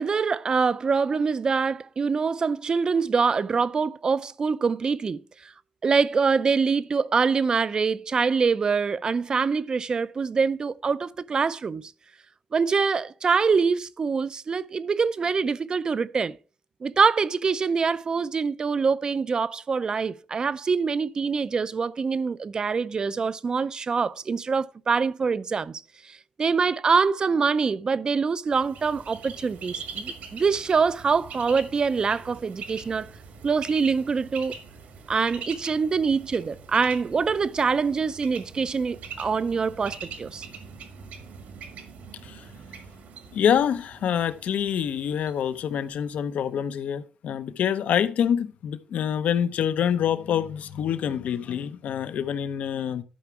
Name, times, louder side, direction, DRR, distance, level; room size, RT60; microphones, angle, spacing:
voice 1, 0.0-5.5 5.8-11.9 12.5-16.4 16.8-33.1 33.4-34.5 35.1-40.5, right 5 dB, 30° right, 0.4 m, -24 dB
Bird, 28.5-46.3, right 5 dB, 80° right, 1.8 m, -43 dB
voice 2, 43.3-53.0, left 8 dB, 70° left, 0.7 m, -26 dB
11.5 x 5.0 x 4.6 m
cardioid pair, 145°, 3 cm